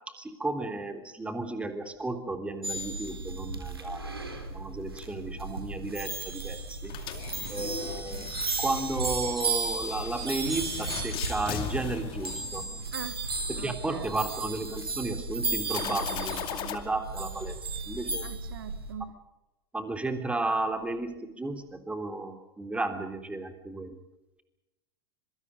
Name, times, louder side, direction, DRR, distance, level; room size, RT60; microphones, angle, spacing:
voice 1, 0.2-6.9 7.5-8.3 8.6-12.6 13.5-17.5 17.8-18.3 19.7-24.0, right 2 dB, 10° right, 6 dB, 3.5 m, -33 dB
sound 1, 2.6-18.9, right 3 dB, 85° right, 3.7 m, -34 dB
sound 2, 6.8-13.0 15.7-16.8, left 11 dB, 45° left, 2.4 m, -39 dB
voice 2, 13.6-14.1 18.2-19.1, right 8 dB, 70° right, 12 dB, 1.5 m, -41 dB
26.0 x 24.5 x 5.2 m, 0.98 s
figure-of-eight pair, 85°, 12 cm